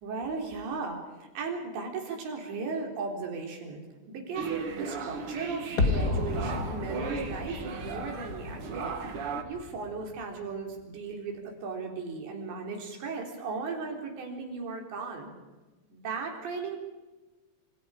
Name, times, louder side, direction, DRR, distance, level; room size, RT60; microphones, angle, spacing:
voice 1, 0.0-3.8 4.1-8.9 9.5-15.3 15.9-16.8, right 4 dB, 80° right, 2 dB, 6.0 m, -36 dB
sound 1, 4.3-9.4, right 5 dB, 55° right, 1.6 m, -36 dB
sound 2, 5.8-10.7 11.0-11.1, left 3 dB, 50° left, 1.1 m, -33 dB
29.0 x 27.5 x 5.0 m, 1.2 s
omnidirectional pair, 5.0 m